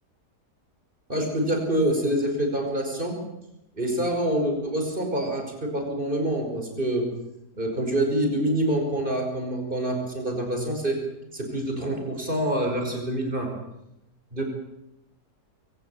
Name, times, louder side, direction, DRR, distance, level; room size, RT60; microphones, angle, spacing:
voice 1, 1.1-3.2 3.8-7.0 7.6-11.0 11.3-13.5 14.3-14.4, right 1 dB, 30° right, 3 dB, 5.7 m, -26 dB
23.0 x 17.5 x 8.7 m, 0.86 s
omnidirectional pair, 1.7 m